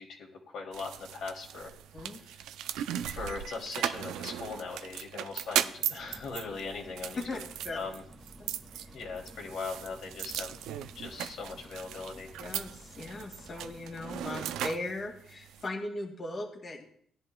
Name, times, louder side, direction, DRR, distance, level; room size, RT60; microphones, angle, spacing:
voice 1, 0.0-1.7 2.1-2.5 3.1-7.4 7.7-8.0 8.9-10.7 10.9-12.3, left 4 dB, 70° left, -1 dB, 2.8 m, -40 dB
sound 1, 0.7-15.7, right 10 dB, 90° right, 0.5 m, -38 dB
sound 2, 6.0-14.3, equal, 10° left, 1.7 m, -53 dB
voice 2, 8.4-8.8 12.4-16.9, left 2 dB, 45° left, -1 dB, 2.2 m, -38 dB
19.0 x 10.5 x 2.3 m, 0.63 s
cardioid pair, 90°, 0 cm